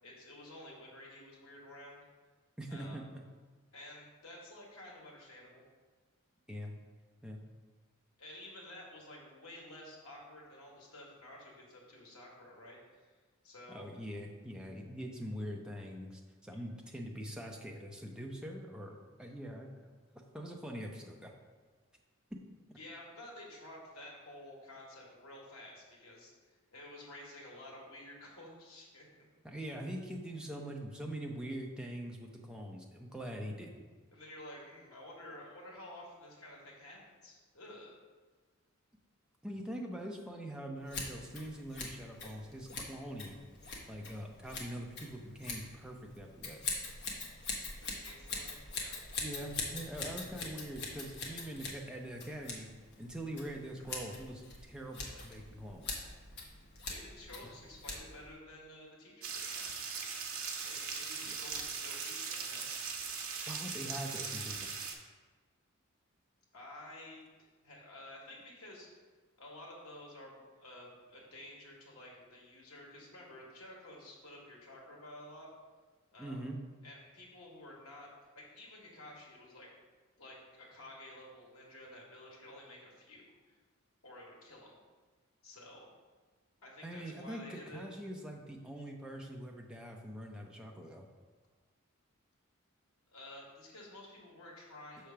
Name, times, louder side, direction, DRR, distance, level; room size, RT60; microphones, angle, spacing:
voice 1, 0.0-2.0 2.7-3.0 3.7-5.6 8.2-13.1 13.4-13.9 22.8-29.0 34.1-37.9 47.8-49.0 56.9-59.7 60.6-62.6 66.5-67.2 67.6-69.0 69.4-75.5 76.1-76.5 76.8-78.1 78.3-79.7 80.2-83.6 84.0-84.8 85.4-85.9 86.6-87.8 93.1-95.1, left 1 dB, 85° left, -3 dB, 1.7 m, -51 dB
voice 2, 2.6-3.2 6.5-6.8 7.2-7.4 13.7-19.7 20.1-21.3 22.3-22.4 29.4-33.8 39.4-43.4 43.9-46.6 49.2-52.7 53.0-56.0 61.3-61.4 63.5-64.7 76.2-76.6 86.8-91.1, equal, 5° right, 0 dB, 0.6 m, -43 dB
Scissors, 40.8-58.3, left 3 dB, 50° left, 1.1 m, -44 dB
sound 1, 59.2-64.9, right 5 dB, 85° right, 0.9 m, -40 dB
6.2 x 3.3 x 5.7 m, 1.4 s
head